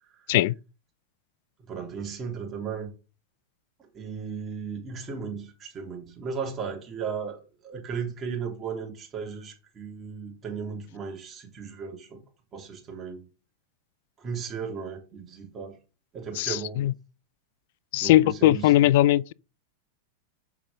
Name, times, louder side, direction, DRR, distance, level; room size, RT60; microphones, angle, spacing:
voice 1, 1.6-2.9 3.8-12.2 12.5-13.3 14.2-15.8 16.1-16.8 18.0-18.9, right 6 dB, 25° right, 3.4 m, -36 dB
voice 2, 16.4-16.9 17.9-19.3, left 14 dB, 65° left, 0.4 m, -20 dB
7.1 x 5.7 x 5.2 m
hypercardioid pair, 120°, 0 cm